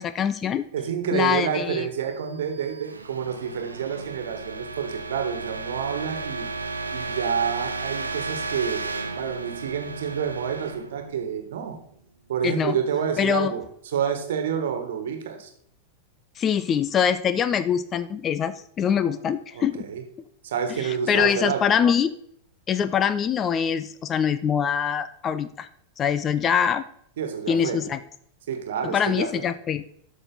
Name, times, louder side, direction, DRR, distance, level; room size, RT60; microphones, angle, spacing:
voice 1, 0.0-0.7 1.1-1.9 12.4-12.8 13.2-13.5 16.4-19.8 20.8-22.1 22.7-25.7 26.0-26.8 27.5-28.0 28.9-29.8, left 8 dB, 25° left, 14 dB, 0.5 m, -24 dB
voice 2, 0.7-6.5 6.9-8.8 9.2-11.8 12.3-13.6 13.9-15.5 19.0-19.1 19.5-20.0 20.4-21.6 27.2-27.8 28.5-29.5, right 7 dB, 60° right, 6 dB, 1.5 m, -28 dB
sound 1, 2.1-11.9, right 3 dB, 80° right, 0.8 m, -34 dB
12.0 x 6.1 x 3.9 m, 0.67 s
figure-of-eight pair, 90°, 0 cm